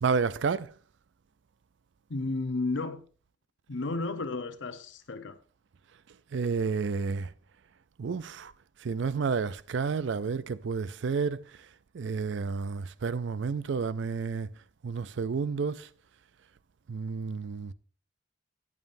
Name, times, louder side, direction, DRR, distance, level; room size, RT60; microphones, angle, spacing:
voice 1, 0.0-0.7 6.3-7.3 8.0-8.5 8.8-11.4 11.9-14.5 14.8-15.9 16.9-17.7, right 5 dB, 65° right, 0.4 m, -30 dB
voice 2, 2.1-3.0 3.7-5.4, left 3 dB, 70° left, 0.8 m, -32 dB
14.0 x 9.5 x 2.6 m
head